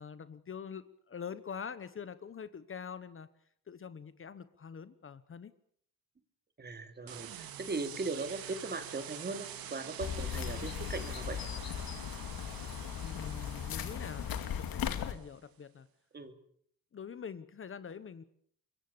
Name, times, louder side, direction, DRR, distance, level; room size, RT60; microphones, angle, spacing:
voice 1, 0.0-3.3 3.7-5.5 13.0-15.9 16.9-18.2, left 7 dB, 35° left, 14 dB, 1.1 m, -45 dB
voice 2, 6.6-11.4 16.1-16.4, right 3 dB, 30° right, 8 dB, 2.6 m, -39 dB
sound 1, 7.1-15.3, right 9 dB, 85° right, 2.7 m, -47 dB
sound 2, 10.0-15.1, left 9 dB, 85° left, 2.3 m, -37 dB
25.0 x 22.5 x 7.0 m, 0.64 s
cardioid pair, 130°, 34 cm